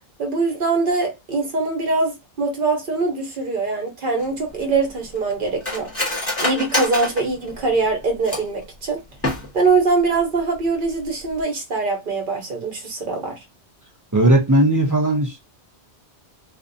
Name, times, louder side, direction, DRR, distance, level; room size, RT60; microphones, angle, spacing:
voice 1, 0.2-5.9 6.4-9.0 9.5-13.4, right 3 dB, 55° right, 1.0 m, -22 dB
Cutlery silverware, 4.2-8.6 9.1-9.8 10.1-10.2 10.6-10.9 11.2-11.4, left 1 dB, 15° left, 1.0 m, -27 dB
voice 2, 14.1-15.4, right 1 dB, 25° right, 0.4 m, -17 dB
2.5 x 2.1 x 2.6 m
omnidirectional pair, 1.1 m